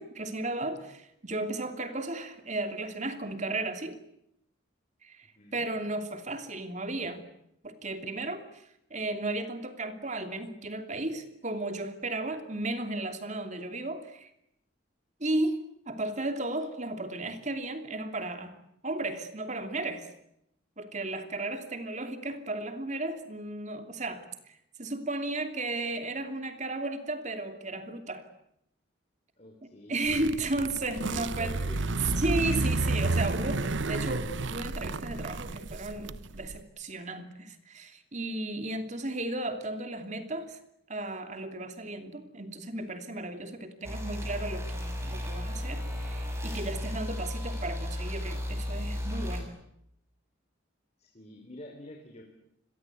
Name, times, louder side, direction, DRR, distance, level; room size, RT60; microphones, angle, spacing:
voice 1, 0.0-4.0 5.0-7.2 7.6-14.3 15.2-15.6 15.9-18.5 18.8-20.1 20.8-28.2 29.6-31.6 32.0-40.6 40.9-49.5, right 2 dB, 35° right, 8 dB, 3.0 m, -34 dB
voice 2, 5.3-5.7 29.4-30.0 31.1-31.9 51.0-52.2, left 1 dB, 35° left, 2 dB, 4.1 m, -47 dB
sound 1, 30.0-36.6, right 2 dB, 70° right, 1.0 m, -31 dB
sound 2, 43.8-49.4, left 1 dB, 15° right, 6.3 m, -34 dB
28.5 x 23.0 x 8.4 m, 0.79 s
head